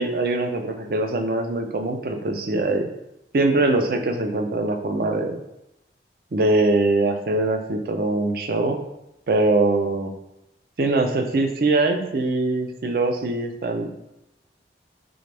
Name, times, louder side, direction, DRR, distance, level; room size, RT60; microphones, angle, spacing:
voice 1, 0.0-2.9 3.3-5.4 6.3-8.8 9.3-10.1 10.8-13.9, right 2 dB, 55° right, 5 dB, 0.4 m, -22 dB
3.9 x 3.3 x 3.3 m, 0.88 s
head